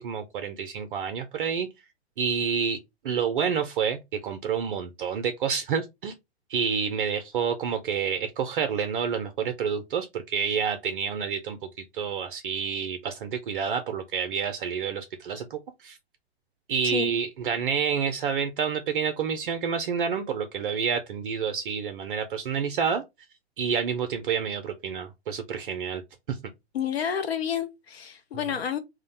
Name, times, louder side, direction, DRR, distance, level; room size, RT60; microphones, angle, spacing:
voice 1, 0.0-1.7 2.2-2.8 3.0-4.0 4.2-6.1 6.5-11.6 11.9-16.0 16.7-23.0 23.6-26.0 26.3-26.4 28.3-28.5, right 6 dB, 55° right, 0.5 m, -28 dB
voice 2, 26.7-28.8, left 8 dB, 65° left, 0.6 m, -29 dB
2.4 x 2.1 x 3.9 m
figure-of-eight pair, 110°, 33 cm